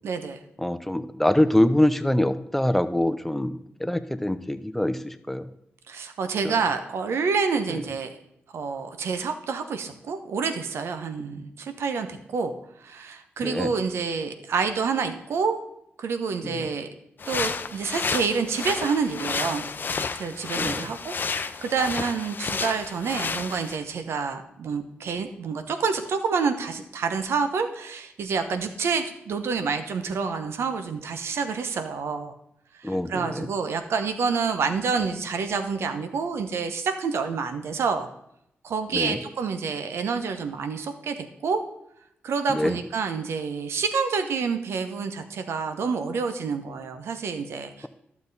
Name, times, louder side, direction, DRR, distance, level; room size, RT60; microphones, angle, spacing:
voice 1, 0.0-0.4 5.9-8.1 8.5-12.5 12.8-15.6 16.0-16.9 17.3-19.7 20.2-32.3 32.7-38.1 38.6-41.1 41.4-41.6 42.2-47.9, right 5 dB, 80° right, 8 dB, 1.0 m, -28 dB
voice 2, 0.6-5.5 6.4-6.5 7.7-7.8 13.4-13.7 16.4-16.7 20.5-20.9 32.8-33.5 38.9-39.2 42.5-42.8, left 1 dB, 5° left, 11 dB, 0.7 m, -24 dB
sound 1, 17.2-23.8, left 5 dB, 50° left, 0.6 m, -31 dB
12.0 x 7.1 x 4.1 m, 0.77 s
cardioid pair, 55°, 4 cm